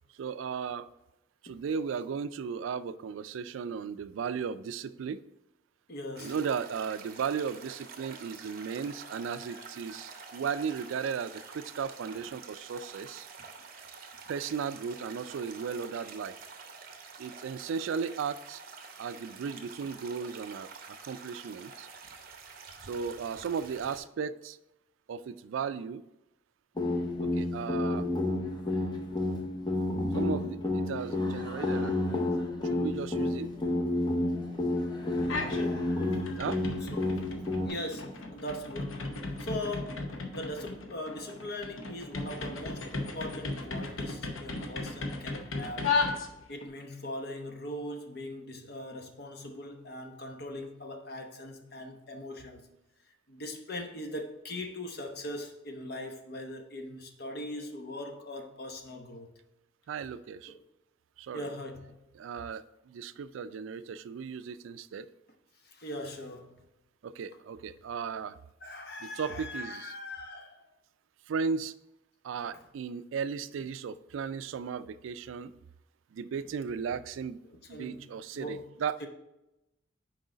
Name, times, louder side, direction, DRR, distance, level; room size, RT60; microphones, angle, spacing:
voice 1, 0.2-0.9 1.4-5.2 6.2-13.3 14.3-16.4 17.2-18.6 19.0-21.9 22.8-24.6 25.1-26.0 27.2-28.1 30.1-32.2 32.6-33.5 36.4-36.6 59.9-60.5 61.2-61.5 62.2-65.1 67.0-68.4 69.0-69.9 71.3-71.8 72.2-75.5 76.1-77.4 77.7-79.1, right 6 dB, 75° right, 0.3 m, -36 dB
voice 2, 5.9-6.3 8.4-8.9 9.3-9.4 9.9-10.1 35.1-36.4 36.9-37.2 37.7-45.9 46.5-52.6 53.3-59.3 60.5-60.6 61.3-62.0 65.6-66.6 68.6-70.6 77.7-78.1 78.3-78.7 79.0-79.1, left 1 dB, 55° left, 0.9 m, -41 dB
sound 1, 6.1-24.0, right 5 dB, 45° right, 0.7 m, -48 dB
sound 2, 26.8-37.7, left 2 dB, 20° left, 0.6 m, -30 dB
sound 3, 35.2-35.7 36.0-46.7, left 3 dB, 85° left, 0.9 m, -35 dB
6.3 x 4.6 x 3.9 m
head